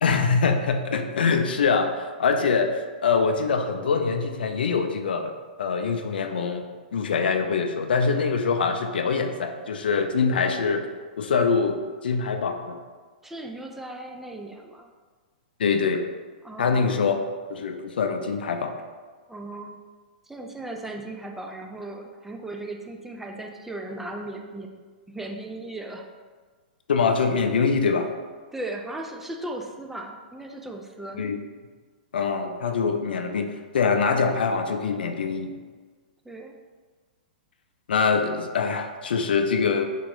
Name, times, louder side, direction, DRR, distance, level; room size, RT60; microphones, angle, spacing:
voice 1, 0.0-5.3 5.6-6.7 6.9-10.9 11.2-12.8 15.6-16.0 16.6-17.2 17.5-18.8 26.9-28.1 31.2-31.4 32.1-35.6 37.9-39.8, left 5 dB, 75° left, 6 dB, 0.4 m, -24 dB
voice 2, 13.2-14.9 16.4-17.1 19.3-19.8 20.3-24.7 25.1-26.1 28.5-31.2 36.2-36.6, right 2 dB, 5° right, 2 dB, 0.4 m, -37 dB
3.7 x 2.9 x 3.7 m, 1.5 s
hypercardioid pair, 120°, 5 cm